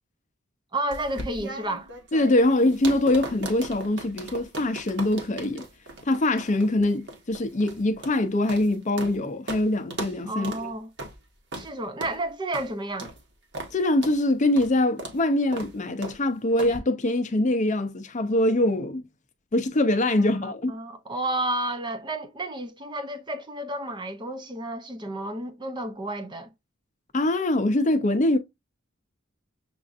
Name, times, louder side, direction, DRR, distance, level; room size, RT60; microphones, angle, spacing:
voice 1, 0.7-1.9 10.3-10.9 11.6-13.1 20.2-26.5, right 1 dB, 20° right, 0.5 m, -31 dB
sound 1, 0.9-9.2 9.5-9.6 9.9-10.2 10.4-10.6 11.0-11.2 11.5-11.7 12.0-12.2 12.5-12.7 13.0-13.2 13.5-13.7 14.0-14.2 14.6-14.7 15.0-15.2 15.5-15.7 16.0-16.2 16.6-16.8, right 2 dB, 60° right, 1.2 m, -37 dB
voice 2, 2.1-5.6 6.1-10.7 13.7-19.1 19.5-20.7 27.1-28.4, left 1 dB, 35° left, 0.6 m, -23 dB
6.8 x 2.5 x 2.4 m
head